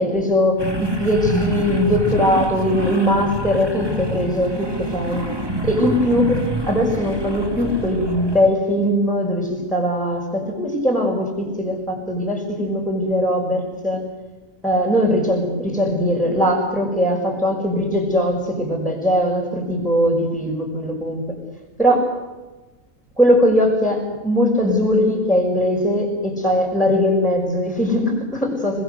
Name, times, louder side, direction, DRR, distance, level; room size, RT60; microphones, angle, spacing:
voice 1, 0.0-5.3 5.6-6.2 6.6-14.0 14.6-21.2 21.8-22.2 23.2-28.8, equal, ahead, -4 dB, 5.8 m, -20 dB
sound 1, 0.6-8.5, right 1 dB, 15° right, 2.8 m, -27 dB
29.5 x 21.0 x 8.1 m, 1.2 s
omnidirectional pair, 1.5 m